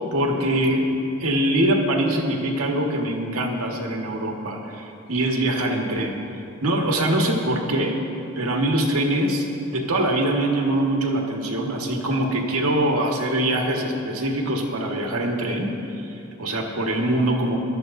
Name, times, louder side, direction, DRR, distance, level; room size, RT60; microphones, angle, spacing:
voice 1, 0.1-6.2 6.6-8.0 8.4-15.7 16.1-17.6, right 1 dB, 85° right, 1 dB, 1.6 m, -23 dB
21.5 x 12.5 x 2.7 m, 2.8 s
head